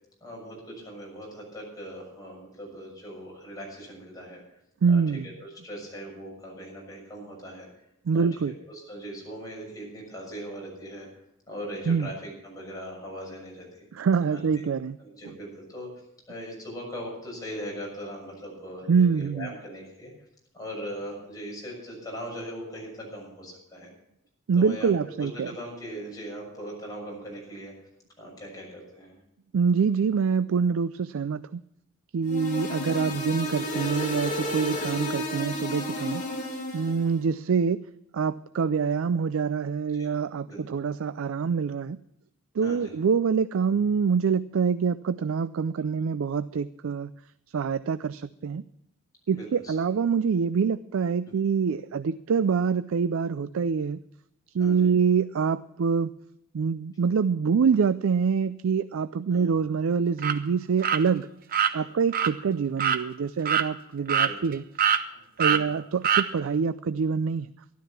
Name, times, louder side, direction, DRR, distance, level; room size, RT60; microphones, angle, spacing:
voice 1, 0.2-4.4 4.9-7.7 8.1-11.1 11.5-13.9 14.3-14.7 15.0-15.9 16.3-20.1 20.5-23.9 24.6-27.7 28.2-29.2 34.7-35.0 39.9-40.1 40.5-40.6 42.6-42.9 49.3-49.7 51.3-51.4 54.6-54.9 59.3-59.5 61.7-61.9 64.2-64.4 65.4-65.7, equal, 20° left, -3 dB, 6.6 m, -40 dB
voice 2, 4.8-5.3 8.1-8.5 11.9-12.1 13.9-15.0 18.9-19.5 24.5-25.5 29.5-31.6 32.1-36.2 36.7-37.8 38.1-42.0 42.6-47.1 47.5-48.6 49.3-54.0 54.5-56.1 56.5-61.3 61.7-64.6 65.4-67.5, right 6 dB, 70° right, 15 dB, 0.4 m, -25 dB
sound 1, 32.3-37.1, left 1 dB, 40° left, 2.7 m, -32 dB
sound 2, 60.2-60.4 60.8-61.0 61.5-61.7 62.1-62.3 62.8-63.0 63.5-63.7 64.1-64.5 64.8-65.0 65.4-65.6 66.0-66.3, right 8 dB, 45° right, 0.8 m, -23 dB
13.0 x 12.0 x 5.9 m, 0.80 s
head